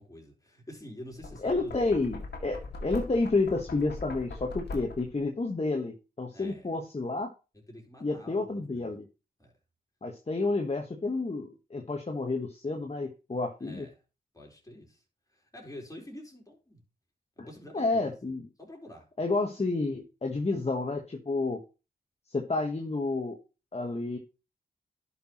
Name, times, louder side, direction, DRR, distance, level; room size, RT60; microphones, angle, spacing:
voice 1, 0.0-1.8 4.7-4.9 6.3-6.8 7.5-8.9 9.4-9.5 13.6-13.9 14.3-15.0 15.3-16.8 17.4-18.1 18.6-19.1, left 1 dB, 20° left, 4.3 m, -47 dB
Knock, 1.1-5.2, left 3 dB, 65° left, 2.0 m, -41 dB
voice 2, 1.4-7.3 8.0-9.0 10.0-13.8 17.4-17.5 17.7-18.5 19.2-21.6 22.3-23.4 23.7-24.2, left 3 dB, 35° left, 1.4 m, -30 dB
11.0 x 5.9 x 3.1 m
cardioid pair, 40°, 18 cm